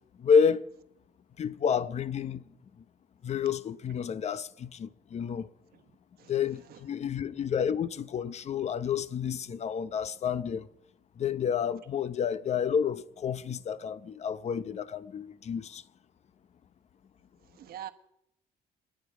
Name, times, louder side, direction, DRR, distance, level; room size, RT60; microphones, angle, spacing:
voice 1, 0.2-0.6 1.4-2.4 3.2-5.5 6.3-10.7 11.2-15.8, left 7 dB, 40° left, 0.8 m, -29 dB
voice 2, 17.4-17.9, right 11 dB, 65° right, 1.3 m, -44 dB
28.5 x 10.5 x 5.0 m
cardioid pair, 110°, 17 cm